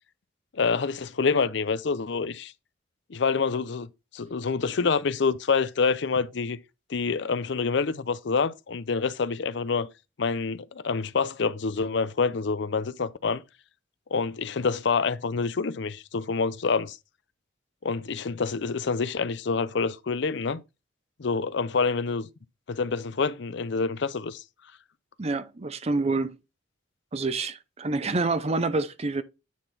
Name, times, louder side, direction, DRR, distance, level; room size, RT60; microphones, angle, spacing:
voice 1, 0.5-2.5 3.1-6.6 6.9-9.9 10.2-13.4 14.1-17.0 17.8-20.6 21.2-22.3 22.7-24.4, left 4 dB, 60° left, 0.5 m, -27 dB
voice 2, 25.2-26.4 27.1-29.2, right 3 dB, 30° right, 0.5 m, -27 dB
9.2 x 3.8 x 4.1 m
head